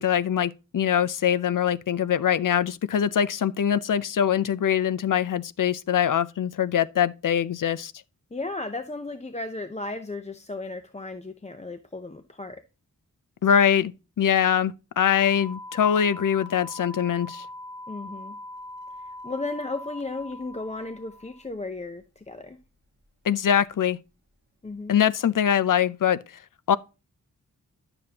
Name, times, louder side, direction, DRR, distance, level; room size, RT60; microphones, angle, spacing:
voice 1, 0.0-7.9 13.4-13.9 14.2-17.5 23.3-24.0 24.9-26.2 26.7-26.8, left 9 dB, 65° left, 0.6 m, -23 dB
voice 2, 8.3-12.6 17.9-18.4 19.0-22.6 24.6-25.0, left 2 dB, 20° left, 0.6 m, -35 dB
sound 1, 15.1-21.4, left 1 dB, 30° right, 1.3 m, -41 dB
11.5 x 6.9 x 2.9 m
wide cardioid pair, 110°, 34 cm